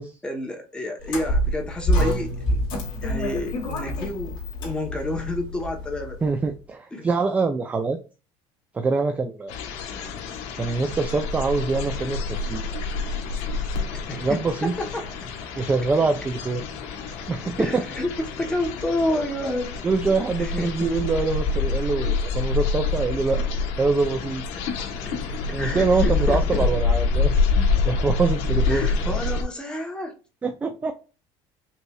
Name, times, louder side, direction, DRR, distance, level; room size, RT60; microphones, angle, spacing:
voice 1, 0.2-2.6 3.0-6.2 6.9-7.0 13.9-15.1 17.6-19.7 20.4-21.0 25.1-25.2 25.5-26.7 28.7-30.1, left 1 dB, 5° left, 0.9 m, -29 dB
sound 1, 1.0-6.3, equal, 40° left, 2.2 m, -26 dB
voice 2, 6.2-8.0 8.7-9.6 10.5-12.6 14.2-14.7 15.6-16.6 17.3-17.8 19.8-23.4 23.8-24.4 25.5-28.9 30.4-30.9, right 4 dB, 10° right, 0.3 m, -24 dB
sound 2, 9.5-29.4, left 4 dB, 70° left, 1.1 m, -27 dB
5.4 x 3.2 x 2.2 m
cardioid pair, 170°, 12 cm